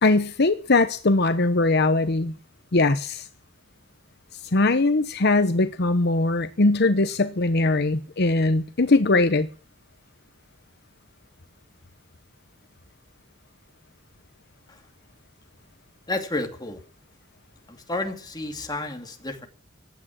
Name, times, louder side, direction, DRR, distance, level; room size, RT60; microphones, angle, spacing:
voice 1, 0.0-2.3 2.7-3.3 4.5-9.5, left 2 dB, 55° left, 0.9 m, -21 dB
voice 2, 16.1-16.8 17.7-19.5, left 2 dB, 20° left, 2.5 m, -31 dB
15.5 x 10.0 x 8.6 m
head